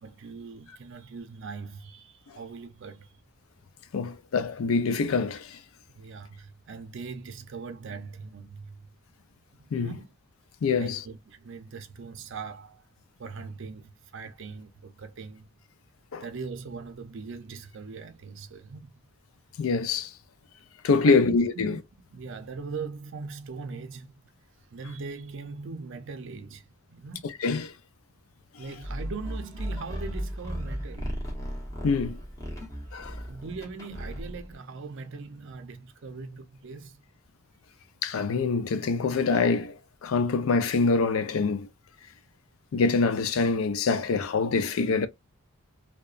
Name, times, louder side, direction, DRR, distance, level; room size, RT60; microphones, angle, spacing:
voice 1, 0.0-3.1 5.9-8.8 9.6-10.1 10.7-12.8 13.2-15.5 16.2-19.0 21.0-21.8 22.1-24.1 24.7-27.4 28.6-31.2 33.2-37.0, right 4 dB, 60° right, 0.5 m, -40 dB
voice 2, 3.9-5.6 9.7-9.9 10.6-11.0 16.1-16.2 19.6-20.1 20.8-21.8 27.2-27.7 31.8-32.2 32.9-33.2 38.0-41.7 42.7-45.1, left 4 dB, 80° left, 0.4 m, -25 dB
sound 1, 28.8-34.5, equal, 15° left, 0.8 m, -36 dB
2.8 x 2.1 x 2.3 m
head